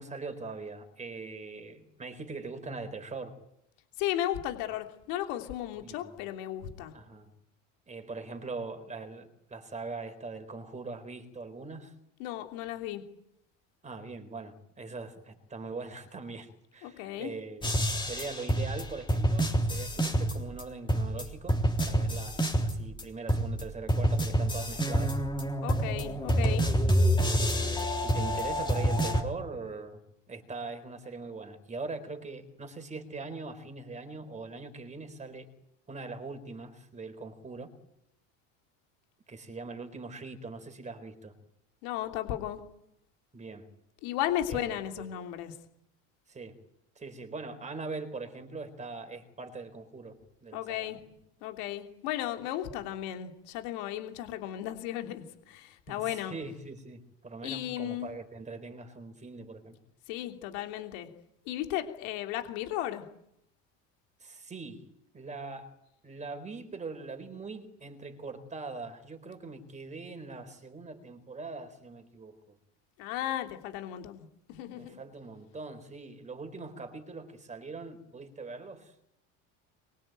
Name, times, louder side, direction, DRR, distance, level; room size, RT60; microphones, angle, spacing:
voice 1, 0.0-3.3 4.7-4.8 5.8-6.2 6.9-7.3 7.9-11.9 13.8-25.2 26.6-30.0 30.3-35.5 35.9-37.7 39.3-41.3 43.3-43.6 44.5-45.1 46.3-46.6 47.0-51.0 55.9-59.8 64.2-64.8 65.1-65.7 66.0-72.6 74.7-78.9, right 3 dB, 20° right, 8 dB, 4.2 m, -42 dB
voice 2, 4.0-6.9 12.2-13.0 16.8-17.3 25.6-26.7 41.8-42.6 44.0-45.5 50.5-51.0 51.4-56.3 57.4-58.1 60.1-61.1 61.4-63.0 73.0-75.0, left 12 dB, 75° left, 5 dB, 3.2 m, -35 dB
sound 1, 17.6-20.6 20.9-23.0 23.3-29.2, equal, 10° left, 3.6 m, -27 dB
24.0 x 23.0 x 9.1 m, 0.79 s
supercardioid pair, 125°, 37 cm